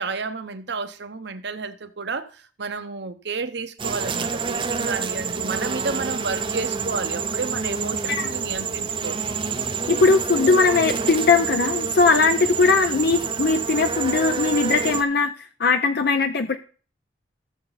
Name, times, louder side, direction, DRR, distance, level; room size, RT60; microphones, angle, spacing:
voice 1, 0.0-9.2, right 4 dB, 70° right, 0.9 m, -31 dB
sound 1, 3.8-15.0, right 5 dB, 30° right, 0.6 m, -27 dB
voice 2, 9.9-15.3 15.6-16.6, left 4 dB, 60° left, 0.6 m, -19 dB
14.5 x 6.8 x 4.0 m
head